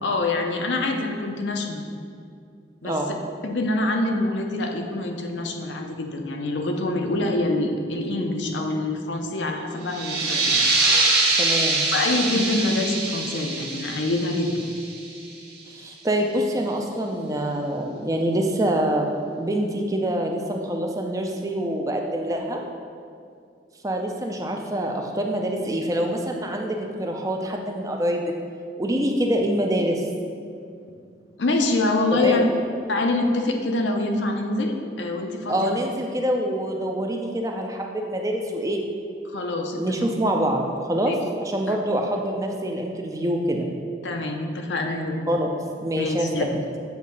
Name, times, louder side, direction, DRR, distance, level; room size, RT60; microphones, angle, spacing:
voice 1, 0.0-1.8 2.8-3.0 3.4-10.6 11.9-14.5 31.4-32.4 32.9-35.8 39.3-40.0 41.1-41.2 41.7-41.8 44.0-45.3 46.0-46.5, left 2 dB, 90° left, 3 dB, 0.7 m, -25 dB
sound 1, 9.9-15.3, right 3 dB, 65° right, 1.0 m, -24 dB
voice 2, 11.4-11.9 15.7-19.1 19.4-22.6 23.8-28.3 28.8-30.0 32.1-32.5 35.5-38.8 39.8-40.6 40.9-41.1 41.4-43.7 45.3-45.5 45.8-46.5, right 1 dB, 20° right, 2 dB, 0.4 m, -25 dB
8.0 x 2.8 x 5.2 m, 2.4 s
head